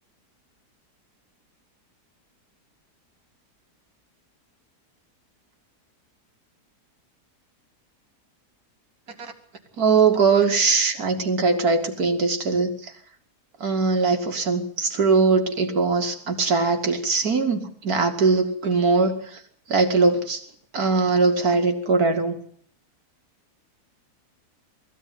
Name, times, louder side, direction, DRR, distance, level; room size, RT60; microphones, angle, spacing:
voice 1, 9.8-12.9 13.6-19.4 19.7-20.4 20.7-22.4, right 4 dB, 65° right, 5 dB, 2.8 m, -21 dB
20.5 x 15.5 x 9.5 m, 0.62 s
omnidirectional pair, 1.7 m